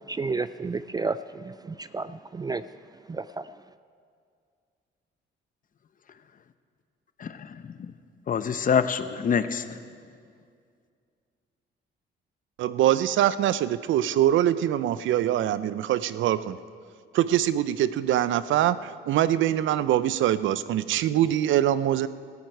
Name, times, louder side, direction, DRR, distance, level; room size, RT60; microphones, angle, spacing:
voice 1, 0.1-2.6 3.1-3.4, right 4 dB, 20° right, 14 dB, 0.3 m, -31 dB
voice 2, 7.2-7.9 8.3-9.8, left 6 dB, 45° left, 11 dB, 0.8 m, -26 dB
voice 3, 12.6-16.6 17.1-22.1, right 12 dB, 75° right, 15 dB, 0.5 m, -23 dB
17.5 x 13.5 x 4.6 m, 2.2 s
cardioid pair, 90°, 20 cm